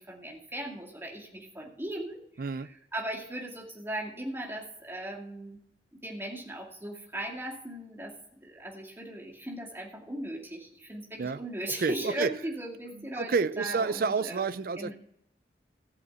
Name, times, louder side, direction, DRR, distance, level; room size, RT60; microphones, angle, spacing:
voice 1, 0.0-5.6 6.0-14.4 14.8-14.9, right 1 dB, 15° right, 2.3 m, -38 dB
voice 2, 2.4-2.7 11.2-11.4 11.8-12.3 12.9-14.9, right 5 dB, 55° right, 0.4 m, -29 dB
15.0 x 5.1 x 8.3 m
head